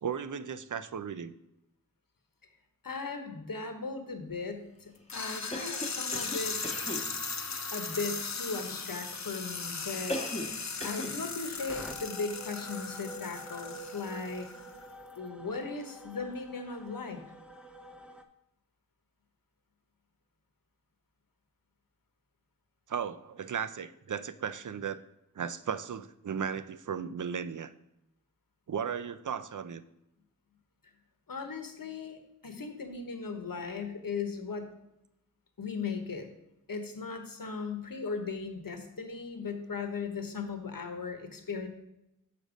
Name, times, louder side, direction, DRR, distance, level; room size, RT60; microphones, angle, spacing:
voice 1, 0.0-1.3 22.9-25.0 25.4-27.7 28.7-29.8, right 7 dB, 65° right, 13 dB, 0.5 m, -35 dB
voice 2, 2.8-6.6 7.7-14.5 15.2-17.2 31.3-34.7 35.6-36.3 36.7-41.7, left 4 dB, 85° left, 6 dB, 1.1 m, -37 dB
sound 1, 5.1-14.9, left 4 dB, 55° left, 0.7 m, -38 dB
Cough, 5.5-7.1 10.1-10.6 10.8-11.2, left 1 dB, 20° left, 1.1 m, -37 dB
sound 2, 11.7-18.2, right 1 dB, 5° right, 0.7 m, -48 dB
6.6 x 5.3 x 5.0 m, 0.86 s
wide cardioid pair, 60°, 33 cm